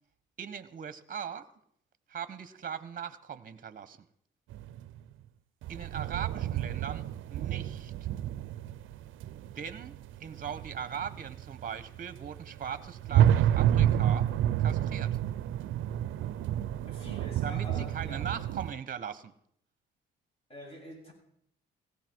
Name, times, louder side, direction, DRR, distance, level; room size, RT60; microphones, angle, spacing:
voice 1, 0.4-1.5 2.1-4.0 5.7-7.9 9.5-14.3 14.6-15.2 17.4-19.3, right 8 dB, 45° right, 1.1 m, -40 dB
sound 1, 4.5-5.0 5.6-18.7, right 11 dB, 80° right, 0.6 m, -30 dB
voice 2, 16.9-18.3 20.5-21.1, equal, 30° left, 8.0 m, -46 dB
18.0 x 16.5 x 4.6 m
cardioid pair, 90°, 20 cm